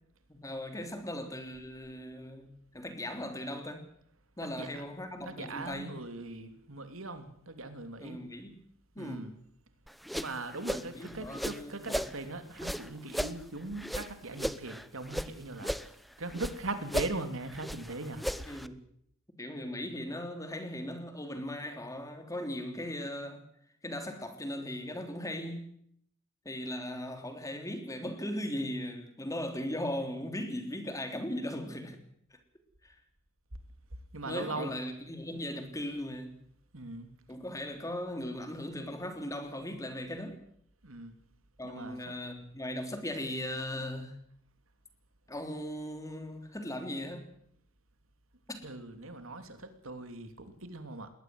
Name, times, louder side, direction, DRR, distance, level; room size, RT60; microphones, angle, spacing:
voice 1, 0.3-3.8 4.4-5.9 8.0-8.6 8.9-9.3 10.7-12.0 18.5-18.8 19.4-23.5 23.8-25.7 26.4-32.0 32.8-33.0 34.2-36.4 37.3-40.4 41.6-44.2 45.3-47.3 48.5-48.6, left 1 dB, 15° left, 3.3 m, -38 dB
voice 2, 4.4-4.8 5.2-8.2 9.0-9.3 10.1-15.8 16.2-18.2 34.1-34.7 36.7-37.1 40.8-41.1 41.6-42.0 48.6-51.1, right 2 dB, 75° right, 3.1 m, -40 dB
sound 1, 9.9-12.1 12.5-15.3 15.6-16.6 16.9-18.7, equal, ahead, 0.8 m, -36 dB
21.0 x 18.0 x 7.8 m
head